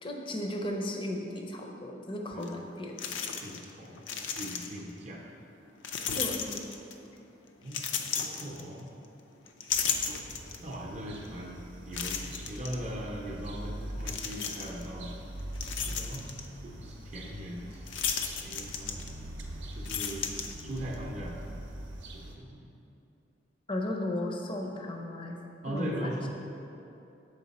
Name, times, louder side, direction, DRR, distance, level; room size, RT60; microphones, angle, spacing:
voice 1, 0.0-3.0 6.1-6.7 23.7-25.4 25.7-26.3, left 1 dB, 25° left, 2 dB, 0.5 m, -35 dB
sound 1, 2.4-2.5 3.0-3.7 4.0-4.9 5.8-7.1 7.7-9.1 9.5-10.7 11.2-11.3 11.9-12.8 14.0-14.9 15.3-16.5 17.9-19.4 19.7-21.0, left 6 dB, 75° left, 0.5 m, -34 dB
voice 2, 3.4-4.0 4.4-5.2 7.6-7.8 8.2-8.9 10.6-11.6 11.9-15.1 15.9-16.3 16.6-18.1 18.4-19.0 19.8-20.3 20.6-21.4 22.4-22.6 25.6-26.3, equal, 35° right, -2 dB, 0.6 m, -39 dB
sound 2, 9.7-22.3, right 1 dB, 70° right, 0.7 m, -43 dB
6.6 x 4.4 x 4.1 m, 2.8 s
head